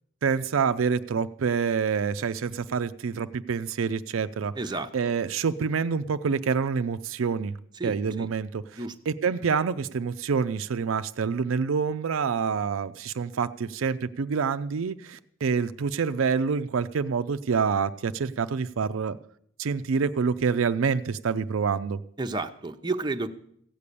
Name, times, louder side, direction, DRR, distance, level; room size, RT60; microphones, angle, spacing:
voice 1, 0.2-4.5 4.9-7.6 7.8-19.2 19.6-22.0, right 5 dB, 75° right, 11 dB, 0.4 m, -27 dB
voice 2, 4.6-4.9 7.8-8.3 8.8-8.9 22.2-23.3, right 2 dB, 20° right, 6 dB, 0.7 m, -31 dB
15.5 x 8.5 x 6.7 m, 0.67 s
head